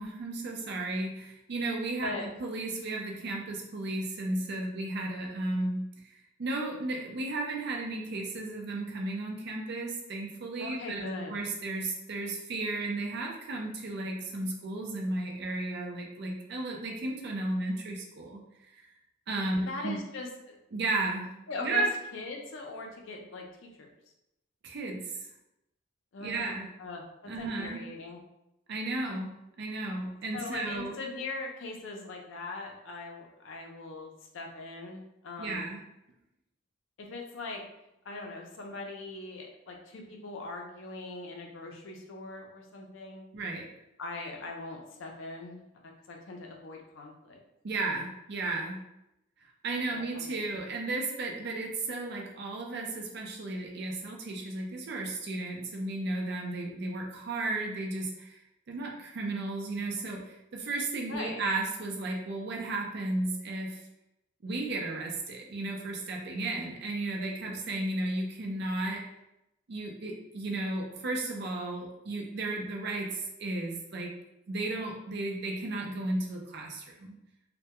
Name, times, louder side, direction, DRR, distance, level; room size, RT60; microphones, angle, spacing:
voice 1, 0.0-5.9 6.4-18.4 18.7-18.8 19.3-20.0 20.7-21.3 21.6-21.9 24.6-25.1 26.2-26.7 27.3-27.8 28.7-31.0 35.4-35.8 43.3-43.7 47.6-48.8 49.4-58.4 58.7-63.8 64.4-69.0 69.7-74.1 74.5-77.1, right 2 dB, 50° right, 0 dB, 0.4 m, -34 dB
voice 2, 10.6-11.4 19.5-20.6 21.5-21.9 22.1-23.9 26.1-26.5 26.8-28.2 30.3-35.7 37.0-37.6 38.1-43.3 44.0-45.6 46.1-47.4 49.9-50.4 61.1-61.4, left 3 dB, 65° left, 1 dB, 0.4 m, -40 dB
2.2 x 2.1 x 2.8 m, 0.87 s
head